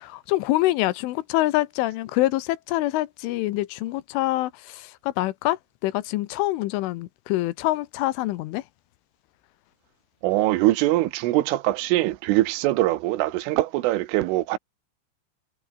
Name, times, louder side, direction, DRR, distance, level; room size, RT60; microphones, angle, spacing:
voice 1, 0.0-8.6, left 17 dB, 80° left, 3.3 m, -25 dB
voice 2, 10.2-14.6, right 17 dB, 80° right, 3.6 m, -22 dB
omnidirectional pair, 5.8 m